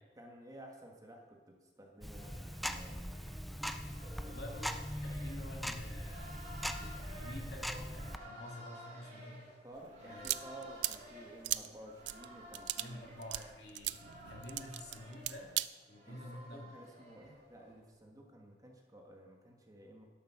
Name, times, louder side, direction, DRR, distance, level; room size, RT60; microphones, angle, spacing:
voice 1, 0.2-3.1 4.0-4.4 9.6-13.1 16.0-16.2 16.5-20.0, right 1 dB, 20° right, 1 dB, 1.6 m, -53 dB
Tick-tock, 2.0-8.2, equal, ahead, 0.4 m, -41 dB
sound 1, 2.1-17.8, equal, 45° right, 4.4 m, -54 dB
voice 2, 4.2-6.5 6.7-9.4 10.0-10.3 12.8-15.5 15.9-16.7, left 1 dB, 65° left, 0 dB, 2.4 m, -49 dB
sound 2, 9.8-15.7, right 15 dB, 85° right, 0.4 m, -39 dB
11.5 x 8.2 x 6.0 m, 1.3 s
head